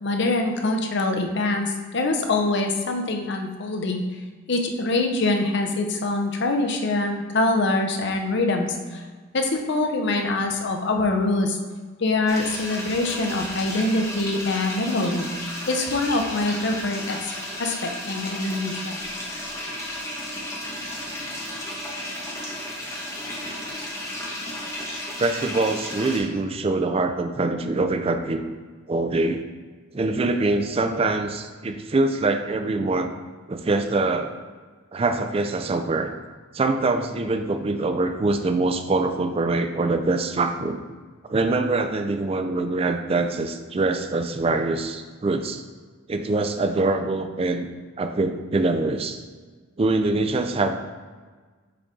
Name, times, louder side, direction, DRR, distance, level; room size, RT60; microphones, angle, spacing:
voice 1, 0.0-4.0 4.5-9.0 9.3-11.6 12.0-15.3 15.7-17.3 17.6-19.0, left 2 dB, 60° left, 3 dB, 0.7 m, -24 dB
sound 1, 12.3-26.2, left 1 dB, 15° left, 1.1 m, -33 dB
voice 2, 25.2-28.4 28.9-29.4 29.9-33.1 33.5-34.4 34.9-36.1 36.5-40.8 41.3-45.6 46.1-47.7 48.0-49.2 49.8-50.8, right 2 dB, 30° right, 7 dB, 0.4 m, -24 dB
6.7 x 3.9 x 3.6 m, 1.4 s
head